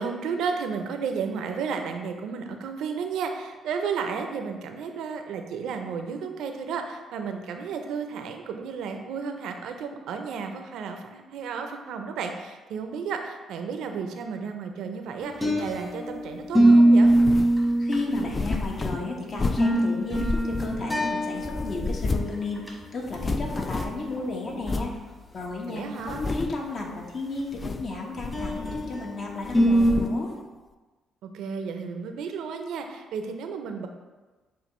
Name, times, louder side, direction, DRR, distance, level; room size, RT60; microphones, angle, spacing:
voice 1, 0.0-17.1 25.7-26.2 31.2-33.9, right 6 dB, 80° right, 5 dB, 0.5 m, -33 dB
sound 1, 15.2-16.1 16.5-18.7 19.3-21.8 22.1-22.2 22.6-22.7 24.2-24.3 24.7-24.8 28.3-29.0 29.5-29.9, right 1 dB, 15° left, 1.3 m, -21 dB
sound 2, 17.0-17.6 18.1-19.8 20.1-21.1 21.4-22.4 22.7-22.8 23.0-24.1 24.6-25.0 25.5-25.6 26.0-26.7 27.4-27.9 28.2-29.1 29.4-30.2, left 3 dB, 35° left, 0.3 m, -31 dB
voice 2, 17.8-22.6 22.9-24.9 25.3-30.3, left 3 dB, 55° left, 0 dB, 1.0 m, -33 dB
7.0 x 2.4 x 3.0 m, 1.2 s
supercardioid pair, 65°, 0 cm